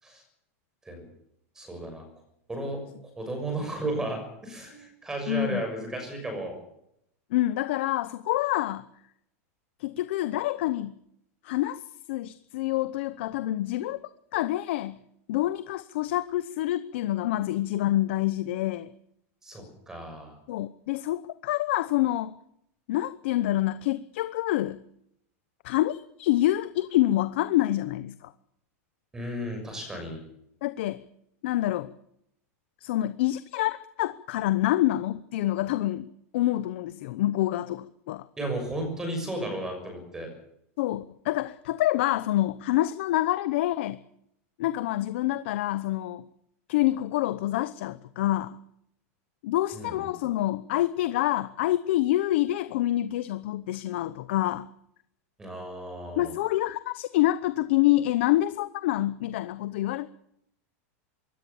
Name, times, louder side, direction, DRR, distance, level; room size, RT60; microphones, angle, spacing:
voice 1, 1.5-2.0 2.5-6.6 19.4-20.4 29.1-30.2 38.4-40.3 49.7-49.9 55.4-56.3, right 1 dB, 5° right, 5 dB, 6.5 m, -34 dB
voice 2, 5.3-5.6 7.3-8.9 9.8-11.0 11.4-11.8 12.1-14.0 14.3-15.0 15.3-18.9 20.5-22.3 22.9-24.8 25.6-28.3 30.6-31.0 31.4-31.9 32.8-36.1 36.3-38.3 40.8-44.0 44.6-46.2 46.7-48.6 49.4-54.7 56.2-60.1, left 15 dB, 50° left, 13 dB, 0.9 m, -27 dB
23.0 x 17.5 x 7.2 m, 0.75 s
supercardioid pair, 180°, 8 cm